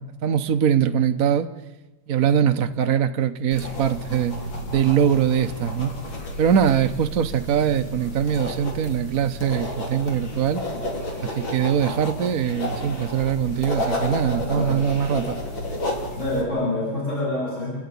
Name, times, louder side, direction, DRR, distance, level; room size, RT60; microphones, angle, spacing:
voice 1, 0.0-1.5 2.1-4.4 4.7-5.9 6.4-10.6 11.2-15.4, right 8 dB, 55° right, 6 dB, 1.1 m, -22 dB
sound 1, 3.5-16.4, left 1 dB, 60° left, 4.0 m, -31 dB
voice 2, 14.4-14.8 16.2-17.7, left 2 dB, 30° left, -7 dB, 8.1 m, -26 dB
30.0 x 11.5 x 9.7 m, 1.1 s
omnidirectional pair, 2.4 m